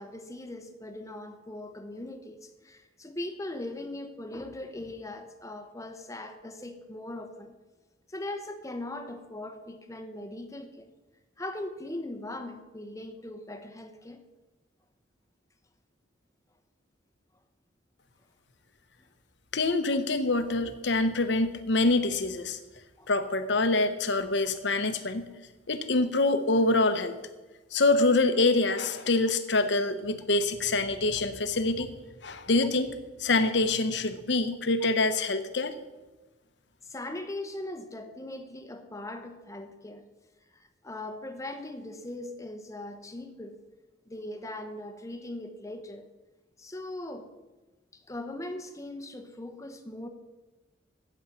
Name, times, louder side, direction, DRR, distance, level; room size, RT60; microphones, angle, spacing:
voice 1, 0.0-7.5 8.1-10.9 11.4-14.2 23.0-23.1 34.8-34.9 36.8-40.0 40.5-43.6 44.1-46.1 46.6-47.3 47.9-50.1, left 1 dB, 15° left, 7 dB, 1.0 m, -40 dB
voice 2, 19.5-22.6 23.1-25.3 25.7-27.2 27.7-31.9 32.2-35.8, left 2 dB, 65° left, 9 dB, 1.0 m, -25 dB
10.0 x 8.2 x 7.3 m, 1.2 s
head